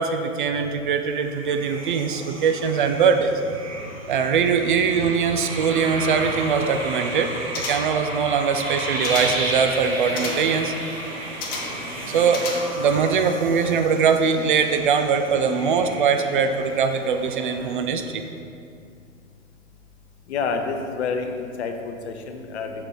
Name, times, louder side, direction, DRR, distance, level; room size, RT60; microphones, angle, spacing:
voice 1, 0.0-3.3 4.1-7.3 7.7-10.7 12.1-12.5 12.8-18.2, right 6 dB, 40° right, 6 dB, 0.4 m, -21 dB
sound 1, 1.0-17.2, right 1 dB, 85° right, 1.6 m, -33 dB
sound 2, 7.5-8.1 8.7-9.5 10.2-10.6 11.4-11.9 12.3-12.9 13.3-13.4, left 3 dB, 20° left, 0.8 m, -33 dB
sound 3, 9.4-17.8, right 1 dB, 25° right, 1.7 m, -41 dB
voice 2, 20.3-22.8, left 5 dB, 55° left, 5 dB, 0.8 m, -28 dB
6.0 x 4.3 x 5.4 m, 2.4 s
figure-of-eight pair, 110°, 39 cm